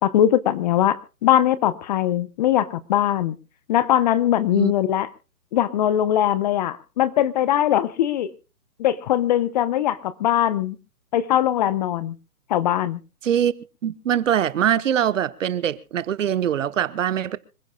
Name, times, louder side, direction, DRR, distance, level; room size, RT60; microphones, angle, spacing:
voice 1, 0.0-3.4 3.7-5.1 5.5-8.3 8.8-10.8 11.1-12.2 12.5-13.0, left 11 dB, 30° left, 0.9 m, -21 dB
voice 2, 13.8-17.4, right 9 dB, 55° right, 1.1 m, -22 dB
26.0 x 15.5 x 2.3 m
hypercardioid pair, 140°, 45 cm